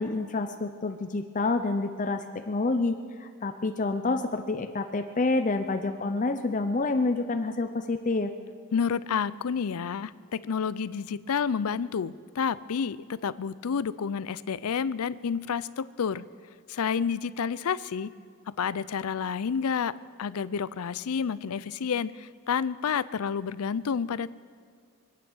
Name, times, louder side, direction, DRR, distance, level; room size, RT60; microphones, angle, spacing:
voice 1, 0.0-8.3, left 3 dB, 35° left, 7 dB, 0.5 m, -28 dB
voice 2, 8.7-16.3 16.7-18.1 18.5-24.3, left 6 dB, 80° left, 17 dB, 0.5 m, -30 dB
24.5 x 9.3 x 6.2 m, 2.1 s
head